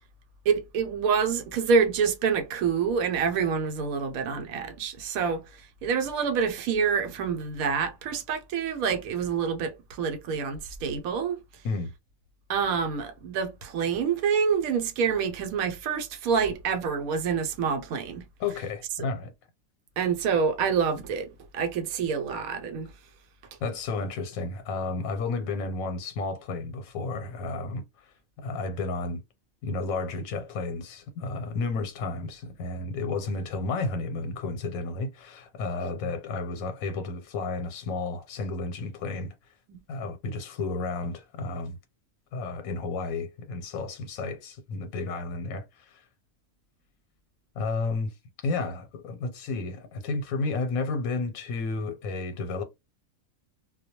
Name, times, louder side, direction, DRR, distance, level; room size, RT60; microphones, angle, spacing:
voice 1, 0.5-5.5 5.8-11.4 12.5-18.2 20.0-22.9 39.7-39.8, right 6 dB, 85° right, 1.0 m, -27 dB
voice 2, 18.4-19.3 23.6-28.1 28.4-29.2 29.6-39.3 39.9-41.8 42.3-46.1 47.6-48.1 48.4-52.6, left 3 dB, 85° left, 1.0 m, -32 dB
2.2 x 2.2 x 2.8 m
omnidirectional pair, 1.5 m